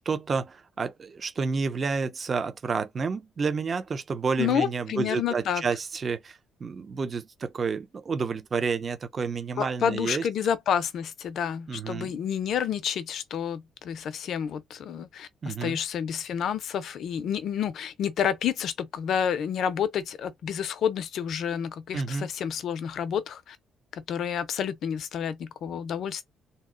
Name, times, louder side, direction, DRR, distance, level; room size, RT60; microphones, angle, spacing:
voice 1, 0.0-10.3 11.7-12.2 15.4-15.8 21.9-22.3, right 5 dB, 30° right, 0.5 m, -30 dB
voice 2, 4.4-5.6 9.6-23.6 23.9-26.2, left 8 dB, 55° left, 0.6 m, -29 dB
2.7 x 2.1 x 3.7 m
cardioid pair, 150°, 0 cm